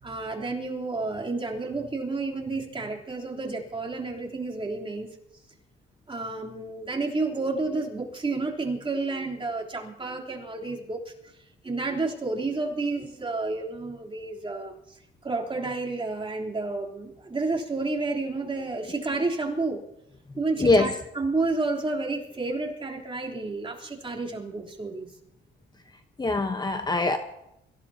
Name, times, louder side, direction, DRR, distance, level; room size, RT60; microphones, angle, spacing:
voice 1, 0.0-5.2 6.1-11.1 11.6-19.8 20.4-25.1, right 3 dB, 25° right, -1 dB, 3.5 m, -30 dB
voice 2, 20.6-20.9 26.2-27.2, left 2 dB, 20° left, 6 dB, 1.1 m, -22 dB
25.0 x 16.0 x 2.9 m, 0.81 s
cardioid pair, 90°, 20 cm